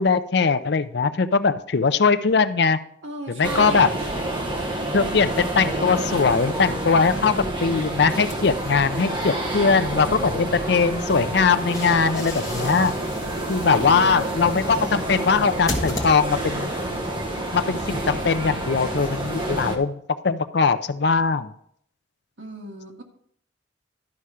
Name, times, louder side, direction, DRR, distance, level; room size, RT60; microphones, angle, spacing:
voice 1, 0.0-2.8 3.3-3.9 4.9-12.9 13.5-16.7 17.5-21.5, left 5 dB, 60° left, 12 dB, 0.5 m, -21 dB
voice 2, 3.0-4.0 13.7-14.6 22.4-23.0, right 2 dB, 80° right, 1 dB, 1.8 m, -35 dB
sound 1, 3.4-19.8, right 1 dB, 25° right, 1.1 m, -28 dB
sound 2, 8.3-9.4 11.3-16.7, left 2 dB, 20° left, 1.4 m, -36 dB
12.0 x 5.6 x 4.9 m, 0.66 s
head